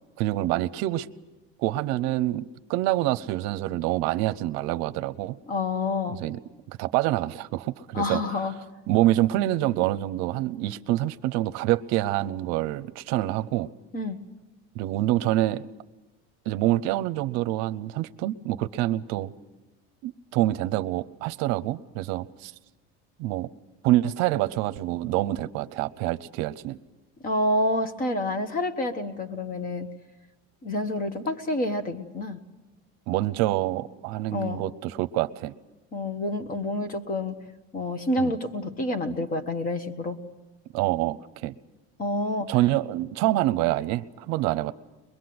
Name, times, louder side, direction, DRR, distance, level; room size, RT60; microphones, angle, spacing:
voice 1, 0.2-1.1 1.6-5.4 6.1-6.4 6.8-8.2 8.9-13.7 14.7-15.7 16.5-19.3 20.0-22.5 23.2-23.5 23.8-26.8 33.1-35.5 38.2-38.3 40.7-41.2 41.4-41.5 42.5-44.7, right 15 dB, 65° right, 15 dB, 0.8 m, -26 dB
voice 2, 5.5-6.2 7.9-8.5 13.9-14.2 27.2-29.9 30.6-32.4 34.3-34.6 35.9-37.4 37.7-40.2 42.0-42.5, left 1 dB, 30° left, 10 dB, 1.3 m, -28 dB
23.0 x 22.0 x 7.8 m, 1.1 s
cardioid pair, 165°, 29 cm